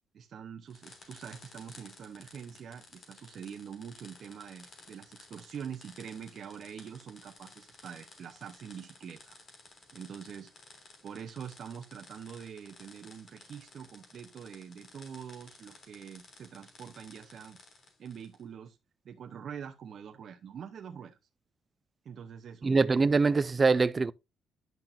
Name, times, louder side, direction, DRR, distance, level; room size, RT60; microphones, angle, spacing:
voice 1, 0.1-9.4 9.9-10.5 11.0-17.6 18.0-18.8 19.0-21.2 22.0-22.9, right 7 dB, 60° right, 0.9 m, -45 dB
sound 1, 0.7-18.4, left 2 dB, 50° left, 3.3 m, -55 dB
voice 2, 22.6-24.1, right 4 dB, 30° right, 0.5 m, -24 dB
10.5 x 5.9 x 2.7 m
cardioid pair, 90°, 0 cm